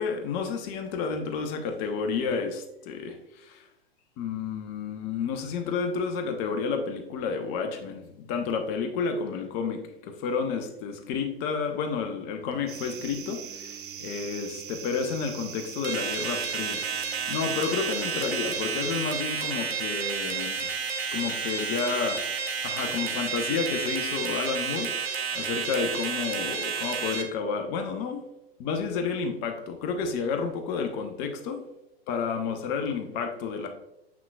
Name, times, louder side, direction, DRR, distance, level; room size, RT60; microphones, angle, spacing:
voice 1, 0.0-3.6 4.2-16.8 17.3-20.7 21.1-22.3 22.6-28.2 28.6-31.6 32.1-33.7, left 5 dB, 30° left, 5 dB, 0.8 m, -31 dB
Singing, 12.4-18.9, right 4 dB, 10° right, 1.1 m, -51 dB
sound 1, 12.7-19.0, right 9 dB, 55° right, 0.7 m, -41 dB
sound 2, 15.8-27.2, right 6 dB, 75° right, 1.1 m, -31 dB
7.3 x 5.9 x 2.3 m, 0.85 s
figure-of-eight pair, 105°, 31 cm